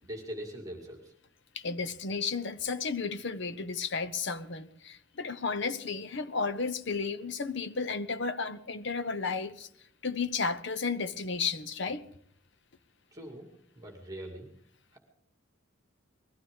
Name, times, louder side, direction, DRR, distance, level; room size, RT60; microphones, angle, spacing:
voice 1, 0.0-1.1 13.1-13.5 13.8-14.5 14.9-15.0, right 1 dB, 15° right, 2.4 m, -42 dB
voice 2, 1.5-9.7 10.0-12.1, left 4 dB, 60° left, 0.9 m, -33 dB
20.5 x 14.5 x 3.7 m
head